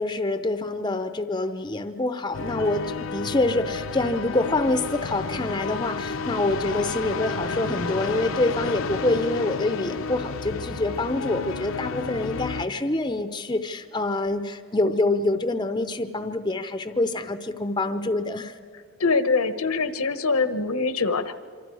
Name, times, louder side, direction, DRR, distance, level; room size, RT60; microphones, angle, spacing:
voice 1, 0.0-18.5, left 2 dB, 20° left, 9 dB, 0.6 m, -26 dB
sound 1, 2.3-12.7, left 4 dB, 65° left, 0.7 m, -31 dB
voice 2, 19.0-21.3, left 4 dB, 85° left, 11 dB, 1.1 m, -23 dB
26.5 x 25.5 x 4.8 m, 2.2 s
head